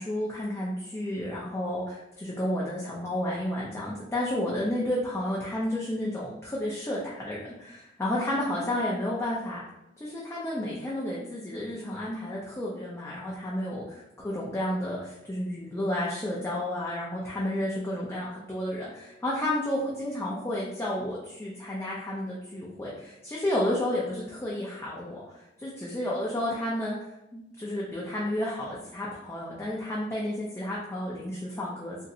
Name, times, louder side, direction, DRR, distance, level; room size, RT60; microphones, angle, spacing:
voice 1, 0.0-9.6 10.0-27.0 27.3-32.0, left 1 dB, 15° left, -6 dB, 0.4 m, -31 dB
2.9 x 2.6 x 2.6 m, 0.88 s
head